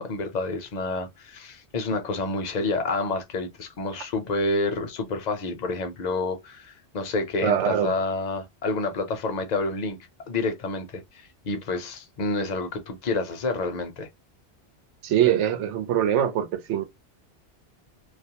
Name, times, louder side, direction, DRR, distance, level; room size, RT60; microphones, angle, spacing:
voice 1, 0.0-10.0 10.3-14.1, left 3 dB, 50° left, 0.6 m, -29 dB
voice 2, 7.4-7.9 15.0-16.8, right 10 dB, 85° right, 0.9 m, -23 dB
2.4 x 2.0 x 2.8 m
omnidirectional pair, 1.2 m